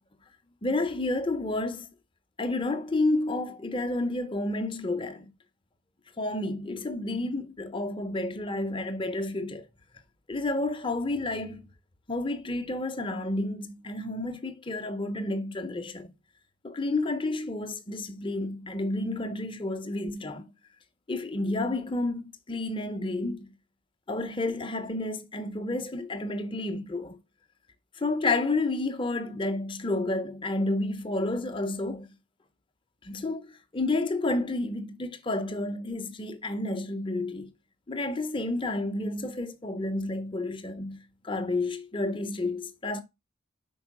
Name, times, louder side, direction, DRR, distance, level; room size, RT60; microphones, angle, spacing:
voice 1, 0.6-1.9 2.4-5.3 6.2-9.6 10.3-11.6 12.1-16.1 16.6-20.4 21.1-23.5 24.1-27.2 28.0-32.1 33.1-37.5 37.9-41.0 41.2-43.0, left 2 dB, 25° left, 0.7 m, -30 dB
5.4 x 4.5 x 5.9 m
head